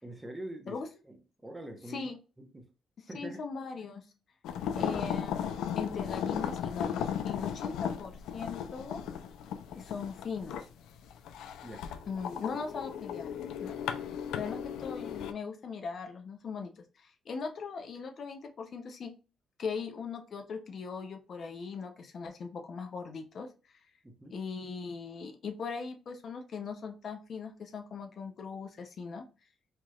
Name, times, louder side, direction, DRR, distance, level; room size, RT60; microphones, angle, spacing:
voice 1, 0.0-1.2 1.4-2.1 2.4-2.7 3.1-3.4 4.6-5.0 11.6-11.8 24.0-24.3, right 1 dB, 10° right, 3 dB, 1.0 m, -44 dB
voice 2, 3.1-4.1 4.7-9.0 9.7-10.7 12.1-13.3 13.6-13.8 14.4-19.1 19.6-23.8 24.3-29.2, left 5 dB, 55° left, 5 dB, 0.7 m, -39 dB
sound 1, 4.4-15.3, left 8 dB, 85° left, 0.4 m, -36 dB
4.5 x 3.1 x 2.4 m, 0.33 s
cardioid pair, 90°, 0 cm